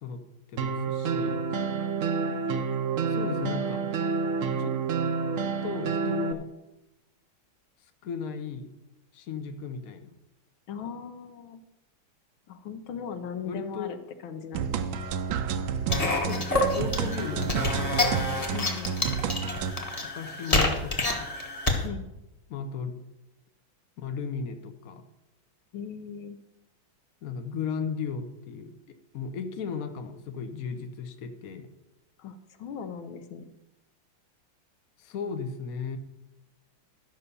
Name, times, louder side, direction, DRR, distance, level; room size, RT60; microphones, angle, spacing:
voice 1, 0.5-1.4 3.1-3.8 4.6-4.7 5.6-6.5 8.0-8.7 9.1-10.1 13.4-13.9 16.2-18.0 19.1-19.2 20.0-21.3 22.5-23.0 24.0-25.0 27.2-31.7 35.0-36.0, left 6 dB, 55° left, 7 dB, 1.2 m, -36 dB
sound 1, 0.6-6.3, right 5 dB, 55° right, 0.9 m, -28 dB
voice 2, 10.7-11.6 12.5-14.0 14.2-14.9 18.5-19.1 21.8-22.0 25.7-26.4 32.2-33.5, left 6 dB, 75° left, 8 dB, 1.7 m, -39 dB
sound 2, 14.5-19.7, right 6 dB, 75° right, 1.5 m, -30 dB
sound 3, 15.9-21.8, left 2 dB, 20° left, 1.2 m, -28 dB
12.5 x 5.5 x 6.8 m, 0.94 s
omnidirectional pair, 2.2 m